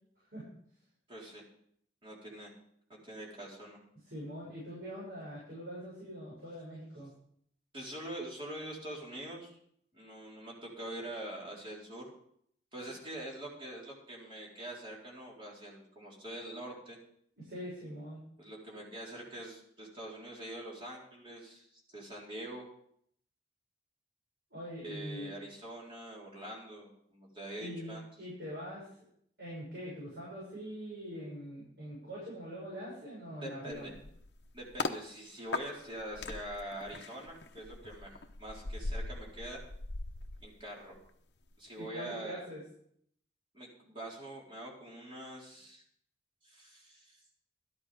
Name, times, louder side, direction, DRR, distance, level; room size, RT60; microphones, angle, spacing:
voice 1, 1.1-1.4 2.0-2.5 2.9-3.8 7.7-9.6 9.9-12.1 12.7-17.0 18.4-22.7 24.8-28.0 33.4-33.9 34.5-38.1 38.4-39.6 40.4-41.0 41.6-42.4 43.5-45.8 46.4-47.2, right 1 dB, 30° right, -3 dB, 4.1 m, -44 dB
voice 2, 4.1-7.1 17.4-18.2 24.5-25.3 27.6-28.9 29.4-34.0 41.8-42.6, equal, 60° right, -7 dB, 6.8 m, -43 dB
sound 1, 33.7-35.0 35.5-41.1 41.4-41.7, left 3 dB, 70° left, 0.9 m, -40 dB
13.0 x 11.0 x 5.2 m, 0.67 s
head